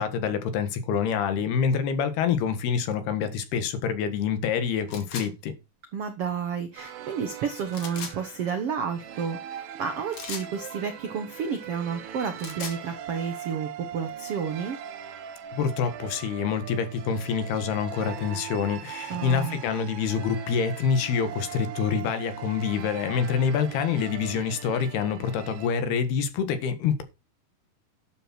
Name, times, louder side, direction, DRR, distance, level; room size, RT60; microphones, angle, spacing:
voice 1, 0.0-5.5 15.6-27.0, left 6 dB, 80° left, 3.6 m, -26 dB
sound 1, 4.9-5.3 7.7-8.2 10.1-10.5 12.2-12.8, left 6 dB, 50° left, 3.1 m, -37 dB
voice 2, 5.9-14.8 19.1-19.6, right 6 dB, 70° right, 1.4 m, -31 dB
sound 2, 6.8-25.7, right 9 dB, 90° right, 3.4 m, -40 dB
12.0 x 7.8 x 4.5 m
omnidirectional pair, 4.5 m